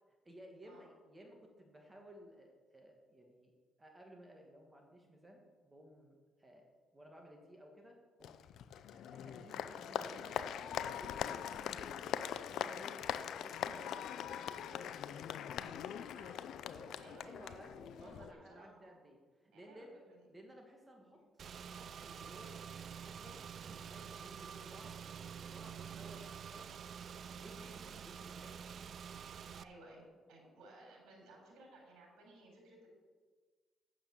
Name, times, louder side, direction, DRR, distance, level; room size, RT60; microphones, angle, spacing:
voice 1, 0.2-3.5 3.8-6.7 6.9-8.4 8.9-13.0 13.4-15.0 15.6-16.0 16.7-20.0 20.3-26.7 27.3-28.9, equal, 20° right, 1 dB, 2.0 m, -57 dB
Applause, 8.2-18.3, left 9 dB, 75° left, 0.5 m, -42 dB
voice 2, 16.1-16.4 17.0-17.6 18.0-19.0 19.5-20.3 21.1-21.3 27.5-27.9 29.6-32.9, right 2 dB, 80° right, 0 dB, 4.0 m, -59 dB
Car / Engine, 21.4-29.6, right 7 dB, 55° right, 0.4 m, -48 dB
8.9 x 7.4 x 7.3 m, 1.4 s
cardioid pair, 90°, 0 cm